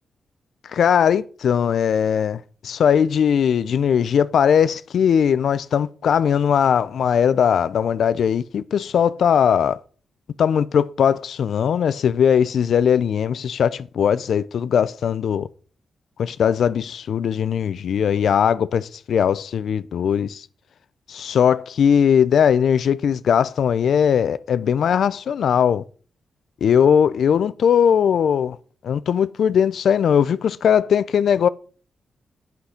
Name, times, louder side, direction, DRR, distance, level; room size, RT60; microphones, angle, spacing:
voice 1, 0.7-9.8 10.4-15.5 16.2-20.5 21.1-25.8 26.6-28.6 28.8-31.5, left 8 dB, 75° left, 0.3 m, -19 dB
8.2 x 5.8 x 5.0 m
cardioid pair, 110°, 0 cm